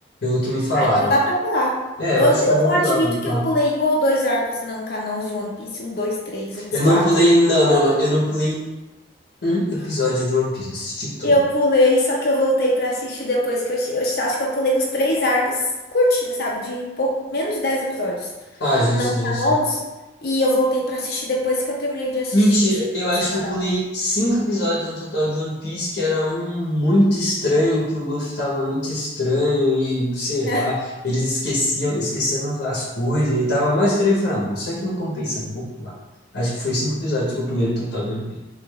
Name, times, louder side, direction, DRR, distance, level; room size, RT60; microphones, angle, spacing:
voice 1, 0.2-1.1 2.0-3.5 6.7-8.7 9.4-11.3 18.6-19.6 22.3-30.8 31.0-35.9 36.3-38.4, left 1 dB, 80° left, -6 dB, 0.9 m, -21 dB
voice 2, 0.7-1.8 2.2-7.0 11.2-15.6 15.9-18.3 18.9-19.8 20.2-22.7 23.2-23.6 30.4-30.6, left 1 dB, 55° left, -2 dB, 0.5 m, -22 dB
4.8 x 2.4 x 2.3 m, 1.1 s
head